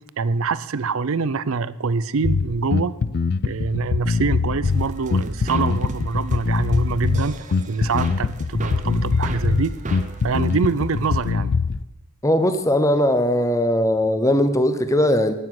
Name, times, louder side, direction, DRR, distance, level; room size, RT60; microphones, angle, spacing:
voice 1, 0.2-3.0 3.4-7.4 7.7-9.8 10.2-11.5, right 4 dB, 65° right, 17 dB, 0.5 m, -25 dB
Bass guitar, 2.2-11.8, left 4 dB, 45° left, 0.4 m, -23 dB
sound 1, 4.6-11.3, right 2 dB, 35° right, 0.8 m, -35 dB
voice 2, 12.2-15.3, left 1 dB, 15° left, 10 dB, 0.8 m, -19 dB
12.5 x 9.6 x 6.0 m, 0.98 s
head